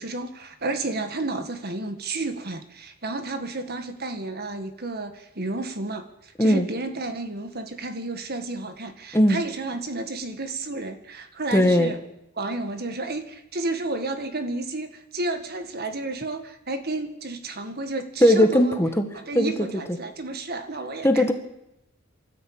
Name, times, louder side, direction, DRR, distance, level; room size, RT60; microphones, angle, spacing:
voice 1, 0.0-12.0 12.4-18.8 19.1-21.3, right 2 dB, 45° right, 8 dB, 1.8 m, -31 dB
voice 2, 11.5-11.9 18.2-19.1 19.4-19.5 21.0-21.3, equal, 10° left, 6 dB, 1.7 m, -18 dB
25.0 x 13.5 x 8.8 m, 0.89 s
head